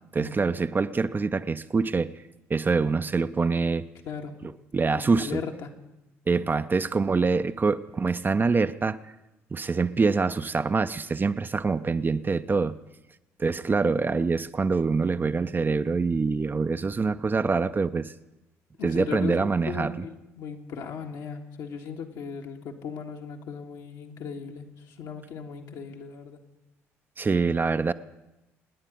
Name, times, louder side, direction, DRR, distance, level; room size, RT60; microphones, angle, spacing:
voice 1, 0.1-2.1 2.5-3.9 4.4-5.4 6.3-9.0 9.5-12.8 13.4-18.1 18.8-19.9 27.2-27.9, right 4 dB, 25° right, 11 dB, 0.6 m, -25 dB
voice 2, 4.0-4.3 4.9-5.7 18.8-26.4, left 6 dB, 65° left, 2 dB, 1.7 m, -37 dB
26.5 x 9.9 x 5.2 m, 0.97 s
hypercardioid pair, 50°, 7 cm